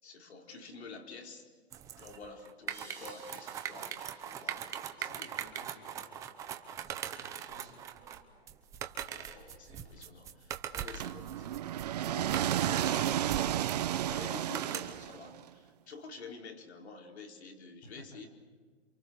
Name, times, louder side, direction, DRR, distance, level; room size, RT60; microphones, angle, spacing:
voice 1, 0.0-1.5 2.0-5.3 9.1-13.6 14.0-18.3, left 4 dB, 75° left, 2 dB, 4.7 m, -49 dB
sound 1, 1.7-15.1, right 9 dB, 10° right, 0.7 m, -41 dB
sound 2, 2.7-6.1, right 1 dB, 10° left, 7.5 m, -57 dB
voice 2, 5.0-6.9 7.2-7.8 17.8-18.3, left 2 dB, 30° left, 4 dB, 3.6 m, -56 dB
sound 3, 11.0-15.4, right 12 dB, 40° right, 0.7 m, -32 dB
28.0 x 26.0 x 6.9 m, 1.5 s
hypercardioid pair, 160°, 33 cm